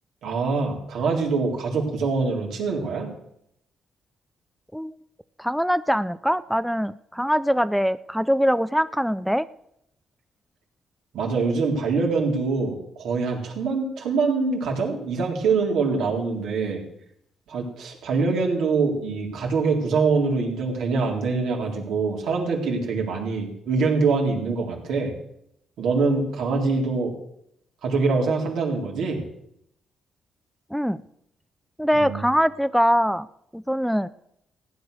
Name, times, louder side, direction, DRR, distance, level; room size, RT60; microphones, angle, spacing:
voice 1, 0.2-3.1 11.1-16.8 17.5-25.1 25.8-27.1 27.8-29.2 31.9-32.2, right 4 dB, 80° right, 0 dB, 3.7 m, -24 dB
voice 2, 5.4-9.5 30.7-31.0 31.8-33.3 33.5-34.1, equal, ahead, 14 dB, 0.5 m, -23 dB
16.0 x 9.5 x 6.6 m, 0.75 s
cardioid pair, 70°, 0 cm